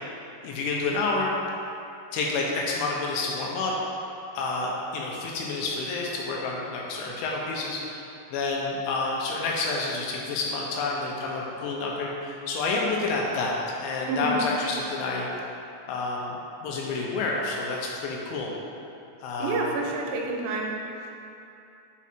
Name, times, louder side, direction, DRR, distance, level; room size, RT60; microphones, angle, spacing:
voice 1, 0.4-1.4 2.1-3.7 4.3-7.9 8.3-15.3 15.9-18.5 19.2-19.6, left 3 dB, 80° left, -2 dB, 3.0 m, -29 dB
voice 2, 14.1-14.4 19.4-20.7, right 3 dB, 90° right, -1 dB, 3.2 m, -28 dB
7.2 x 4.8 x 4.3 m, 2.7 s
omnidirectional pair, 5.7 m